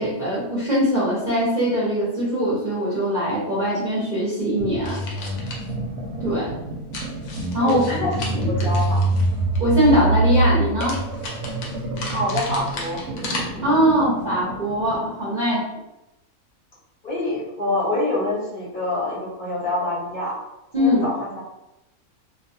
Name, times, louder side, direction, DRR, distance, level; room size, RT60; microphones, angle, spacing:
voice 1, 0.0-5.0 6.2-6.5 7.5-8.0 8.3-8.5 9.6-11.0 13.6-15.6 20.7-21.1, equal, 40° right, -9 dB, 0.7 m, -21 dB
sound 1, 4.6-15.1, right 2 dB, 75° right, 1.0 m, -26 dB
sound 2, 4.8-5.7 6.9-9.6 10.8-13.4, left 2 dB, 70° left, 1.0 m, -35 dB
voice 2, 7.6-8.1 8.5-9.0 12.1-13.0 17.0-20.4 20.7-21.4, left 2 dB, 40° left, -7 dB, 0.8 m, -26 dB
2.6 x 2.2 x 2.6 m, 0.93 s
omnidirectional pair, 1.5 m